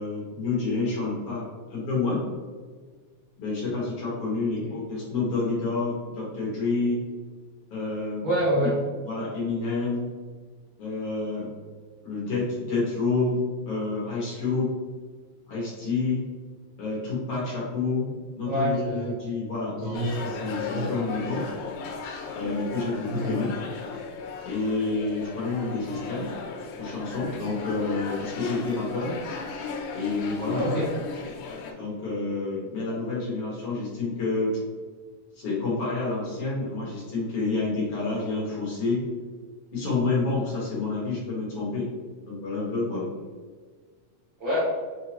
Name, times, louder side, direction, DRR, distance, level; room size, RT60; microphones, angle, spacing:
voice 1, 0.0-2.2 3.4-7.0 7.7-8.2 9.0-10.1 10.8-11.5 12.0-14.7 15.5-16.2 16.8-18.1 18.4-21.4 22.3-23.5 24.4-26.3 26.8-29.1 29.9-30.8 31.7-34.5 35.3-39.0 39.7-41.9 42.2-43.0, left 3 dB, 55° left, -7 dB, 1.9 m, -28 dB
voice 2, 8.2-8.7 18.4-19.1 19.8-20.4 20.7-20.9 23.1-23.4 30.5-30.9 44.4-44.6, equal, 65° right, -8 dB, 1.2 m, -27 dB
sound 1, 19.9-31.7, left 4 dB, 90° left, 2.1 m, -36 dB
5.8 x 2.8 x 2.9 m, 1.5 s
omnidirectional pair, 3.5 m